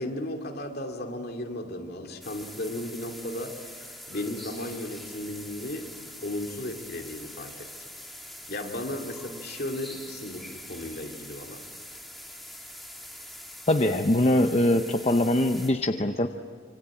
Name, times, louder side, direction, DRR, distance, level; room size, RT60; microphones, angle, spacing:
voice 1, 0.0-5.9 6.2-7.7 8.5-11.6, left 1 dB, 50° left, 2 dB, 2.6 m, -35 dB
sound 1, 2.2-15.7, left 1 dB, ahead, 2.5 m, -44 dB
voice 2, 13.7-16.3, left 1 dB, 30° left, 6 dB, 0.7 m, -22 dB
26.0 x 24.5 x 8.7 m, 2.2 s
head